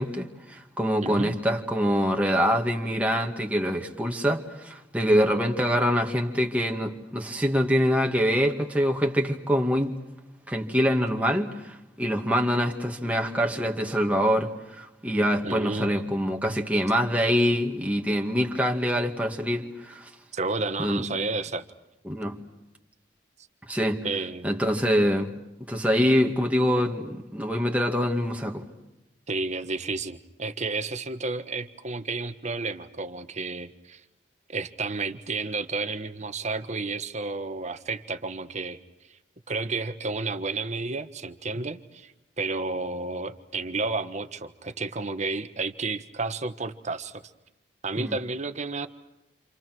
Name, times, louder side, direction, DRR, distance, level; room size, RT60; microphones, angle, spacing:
voice 1, 0.0-9.9 10.5-20.1 20.8-21.0 22.1-22.4 23.7-24.0 24.4-25.3 25.7-28.6 48.0-48.2, equal, 10° right, 1 dB, 2.2 m, -25 dB
voice 2, 1.0-1.3 15.4-16.6 20.3-21.6 24.0-24.7 29.3-34.0 34.5-38.8 39.5-42.1 42.4-47.2 47.8-48.9, right 3 dB, 40° right, 9 dB, 1.4 m, -31 dB
29.0 x 27.5 x 6.2 m, 0.96 s
head